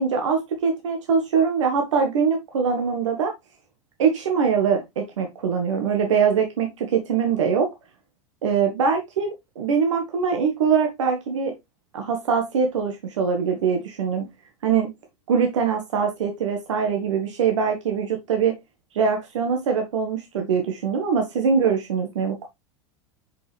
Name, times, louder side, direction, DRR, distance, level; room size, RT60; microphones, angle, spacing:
voice 1, 0.0-3.3 4.0-7.7 8.4-11.5 11.9-14.3 14.6-14.9 15.3-18.6 18.9-22.5, right 6 dB, 85° right, 1.5 m, -23 dB
5.4 x 5.4 x 3.2 m
hypercardioid pair, 105°, 15 cm